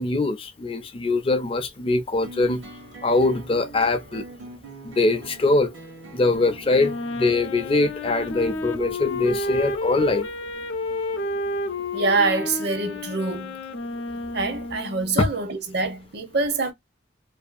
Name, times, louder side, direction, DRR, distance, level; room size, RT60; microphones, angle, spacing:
voice 1, 0.0-2.6 3.0-4.2 4.8-5.7 6.1-10.5 15.2-15.3, left 2 dB, 30° left, 0.4 m, -22 dB
sound 1, 2.2-7.3, right 2 dB, 85° right, 1.1 m, -43 dB
Wind instrument woodwind instrument, 6.7-15.1, left 2 dB, 90° left, 0.5 m, -31 dB
voice 2, 11.9-13.6 14.3-16.7, right 3 dB, 60° right, 0.6 m, -25 dB
2.6 x 2.3 x 2.3 m
head